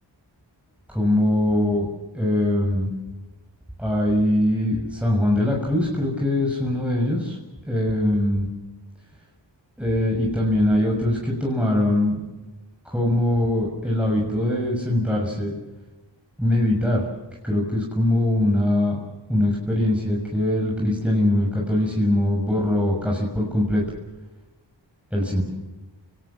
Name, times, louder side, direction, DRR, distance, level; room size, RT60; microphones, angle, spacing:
voice 1, 0.9-1.9 2.1-2.9 3.8-7.4 7.7-8.5 9.8-12.2 12.8-15.5 16.4-17.0 17.4-19.0 19.3-23.8 25.1-25.4, left 1 dB, 5° right, -2 dB, 6.8 m, -22 dB
29.5 x 19.0 x 7.6 m, 1.1 s
wide cardioid pair, 45°, 45 cm